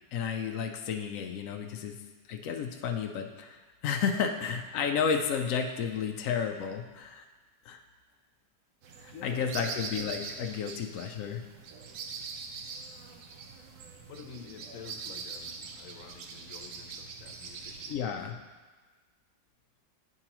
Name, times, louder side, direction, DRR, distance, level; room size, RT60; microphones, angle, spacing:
voice 1, 0.1-2.0 2.3-7.2 7.6-7.8 9.0-11.4 17.9-18.4, left 6 dB, 85° left, 4 dB, 0.7 m, -32 dB
sound 1, 8.8-17.9, right 5 dB, 65° right, 1.0 m, -43 dB
voice 2, 9.1-9.8 14.1-18.1, left 6 dB, 60° left, 3 dB, 1.0 m, -49 dB
10.5 x 4.6 x 2.9 m, 1.3 s
omnidirectional pair, 2.0 m